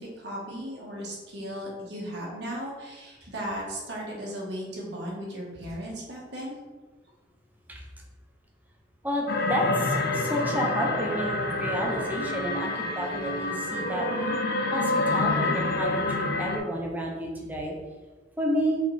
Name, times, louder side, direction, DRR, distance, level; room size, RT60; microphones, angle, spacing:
voice 1, 0.0-6.6, equal, 60° right, -4 dB, 1.8 m, -36 dB
voice 2, 9.0-14.1 14.7-17.8 18.4-18.8, equal, 10° right, -1 dB, 0.9 m, -30 dB
sound 1, 9.3-16.6, left 2 dB, 55° left, 0.6 m, -27 dB
5.1 x 4.3 x 4.3 m, 1.3 s
head